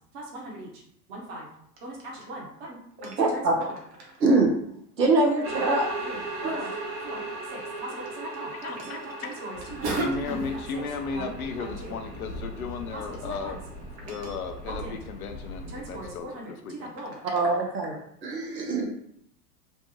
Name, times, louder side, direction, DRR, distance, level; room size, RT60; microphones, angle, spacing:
voice 1, 0.1-0.8 1.1-1.5 1.8-4.2 5.6-5.7 6.0-6.2 6.5-6.7 7.0-7.2 7.5-10.4 10.7-10.8 11.1-12.0 12.9-13.6 14.1-14.4 14.6-15.0 15.7-17.1, right 2 dB, 40° right, -2 dB, 0.9 m, -37 dB
voice 2, 3.2-3.5 4.2-4.5 5.0-5.8 6.4-6.6 17.3-18.9, right 2 dB, 85° right, 1 dB, 0.7 m, -23 dB
sound 1, 5.4-14.9, right 2 dB, 60° right, 1.3 m, -38 dB
voice 3, 8.6-9.3 10.0-13.6 14.0-16.9, left 4 dB, 60° left, 6 dB, 0.6 m, -35 dB
sound 2, 9.5-16.2, left 1 dB, 20° left, 0.7 m, -41 dB
3.3 x 2.1 x 2.8 m, 0.70 s
figure-of-eight pair, 95°, 49 cm